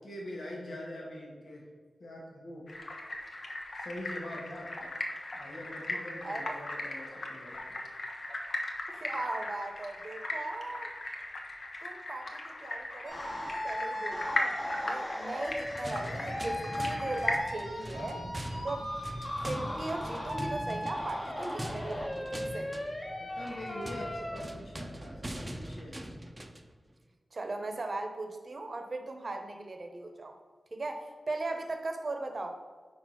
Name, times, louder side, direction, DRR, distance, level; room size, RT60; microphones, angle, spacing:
voice 1, 0.0-1.7 2.0-2.6 3.8-4.9 5.3-7.8 23.2-26.0, left 1 dB, 80° left, -3 dB, 1.4 m, -43 dB
sound 1, 2.7-17.4, left 2 dB, 60° left, 0.9 m, -38 dB
voice 2, 6.2-6.6 8.9-10.9 11.8-14.6 14.8-18.2 18.6-18.9 19.4-22.8 27.3-30.4 30.7-32.6, right 2 dB, 55° right, 5 dB, 0.8 m, -38 dB
sound 2, 13.1-24.4, left 1 dB, 30° left, 1.2 m, -37 dB
sound 3, 15.3-26.7, equal, 20° right, 0.6 m, -42 dB
4.8 x 4.5 x 5.7 m, 1.5 s
wide cardioid pair, 65°, 0 cm